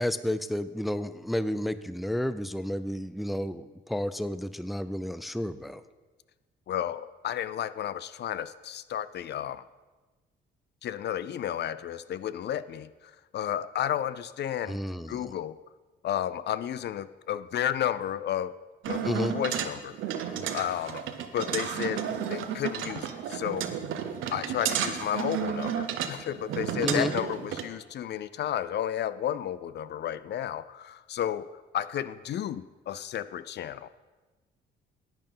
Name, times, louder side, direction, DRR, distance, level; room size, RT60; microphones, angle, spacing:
voice 1, 0.0-5.8 14.7-15.3 19.0-19.3 26.8-27.1, equal, ahead, 14 dB, 0.4 m, -31 dB
voice 2, 6.7-9.6 10.8-12.9 13.3-14.8 15.1-15.6 16.0-18.5 18.9-21.0 21.3-23.7 24.3-33.9, left 10 dB, 60° left, 15 dB, 0.5 m, -32 dB
sound 1, 18.8-27.6, right 9 dB, 85° right, 0.9 m, -32 dB
10.5 x 8.9 x 5.5 m, 1.2 s
cardioid pair, 90°, 20 cm